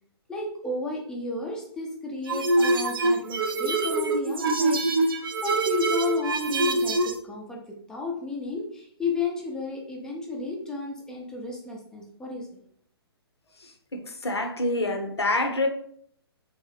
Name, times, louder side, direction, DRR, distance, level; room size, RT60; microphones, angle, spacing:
voice 1, 0.3-7.6 7.9-12.6, left 3 dB, 5° left, -1 dB, 0.4 m, -32 dB
sound 1, 2.3-7.2, right 2 dB, 60° right, 0.5 m, -24 dB
voice 2, 13.9-15.7, left 2 dB, 80° left, 5 dB, 0.6 m, -26 dB
3.2 x 2.7 x 3.1 m, 0.65 s
figure-of-eight pair, 125°, 14 cm